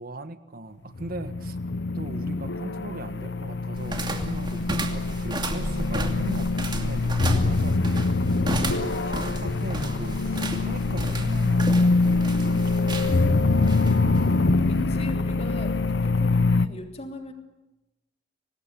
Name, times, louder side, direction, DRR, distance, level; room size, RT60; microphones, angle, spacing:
voice 1, 0.0-1.6 1.9-13.7, right 1 dB, 50° right, 11 dB, 1.5 m, -39 dB
sound 1, 0.9-16.7, left 3 dB, 65° left, 1.0 m, -24 dB
sound 2, 3.8-15.0, right 1 dB, 25° right, 2.6 m, -33 dB
voice 2, 14.7-17.3, left 1 dB, 35° left, 4 dB, 3.3 m, -40 dB
25.5 x 19.0 x 9.9 m, 0.97 s
head